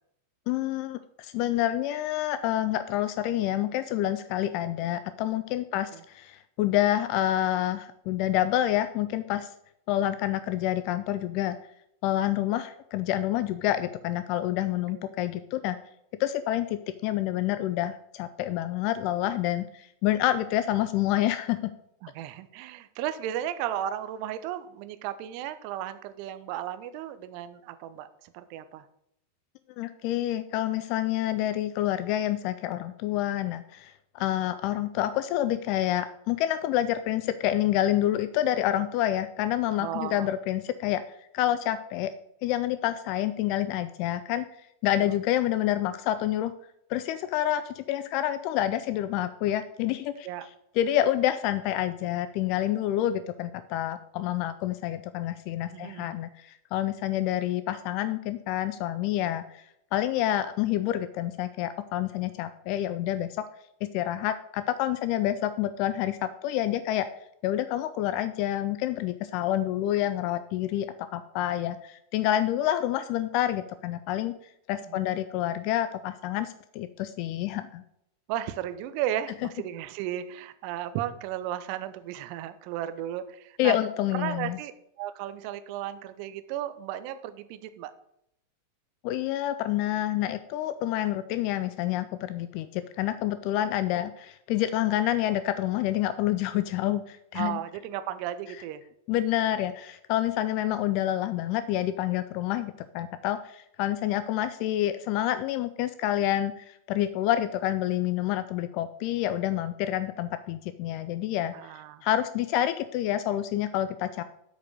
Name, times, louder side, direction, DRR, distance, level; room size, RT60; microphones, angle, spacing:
voice 1, 0.5-9.5 9.9-11.6 12.0-15.8 16.2-21.7 29.8-41.0 41.3-42.1 42.4-44.5 44.8-46.5 46.9-50.3 50.8-59.6 59.9-63.4 63.9-67.1 67.4-74.3 74.7-77.8 83.6-84.6 89.0-97.6 99.1-111.5 112.0-114.2, left 13 dB, 45° left, 12 dB, 0.4 m, -28 dB
voice 2, 22.0-28.9 39.8-40.3 45.0-45.2 50.2-50.5 55.7-56.2 74.8-75.2 78.3-83.8 84.1-84.7 85.0-87.9 97.3-98.8 111.5-112.0, right 11 dB, 45° right, 11 dB, 0.7 m, -35 dB
8.1 x 5.1 x 6.5 m, 0.78 s
figure-of-eight pair, 90°, 0 cm